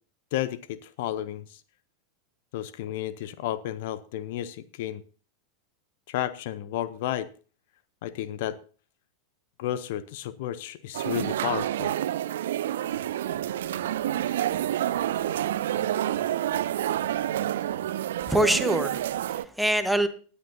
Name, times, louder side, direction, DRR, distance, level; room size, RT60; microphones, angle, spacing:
voice 1, 0.3-1.6 2.5-5.0 6.1-7.3 8.0-8.6 9.6-12.0, left 12 dB, 50° left, 16 dB, 0.6 m, -32 dB
sound 1, 10.9-19.5, right 12 dB, 60° right, 0.5 m, -28 dB
sound 2, 12.9-19.3, equal, 75° left, 2.2 m, -51 dB
voice 2, 18.3-20.1, right 1 dB, ahead, 8 dB, 1.2 m, -24 dB
19.0 x 10.0 x 2.7 m, 0.38 s
figure-of-eight pair, 90°, 0 cm